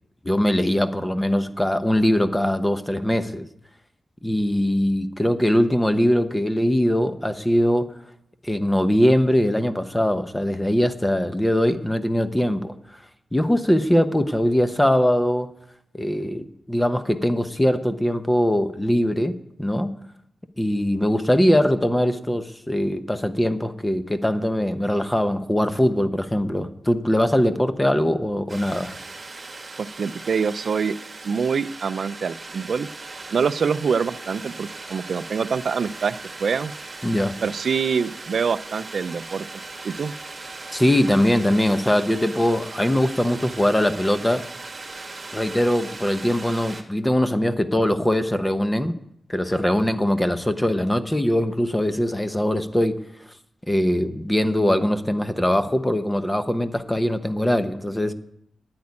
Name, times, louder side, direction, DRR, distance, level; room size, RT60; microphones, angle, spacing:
voice 1, 0.2-3.4 4.2-7.9 8.4-12.7 13.3-15.5 15.9-19.9 20.6-28.9 37.0-37.3 40.7-44.4 45.3-49.0 49.3-53.0 53.7-58.1, equal, 10° left, 10 dB, 0.8 m, -21 dB
sound 1, 28.5-46.8, right 3 dB, 35° right, 1.6 m, -38 dB
voice 2, 29.8-31.0 31.2-32.9 33.3-36.7 37.4-39.5 39.8-40.1, right 6 dB, 65° right, 15 dB, 0.4 m, -25 dB
9.6 x 8.6 x 9.7 m, 0.75 s
wide cardioid pair, 115°, 0 cm